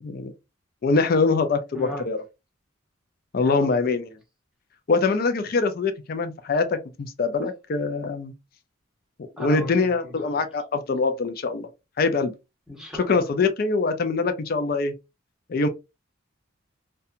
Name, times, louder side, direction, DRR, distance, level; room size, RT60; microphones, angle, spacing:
voice 1, 0.0-0.3 0.8-2.2 3.3-4.2 4.9-8.3 9.4-11.7 12.0-12.3 12.9-14.9 15.5-15.7, left 4 dB, 45° left, 0.4 m, -23 dB
voice 2, 1.7-2.1 3.4-3.7 9.4-10.3 12.7-13.2, left 1 dB, 5° right, 0.7 m, -36 dB
2.7 x 2.2 x 2.4 m
head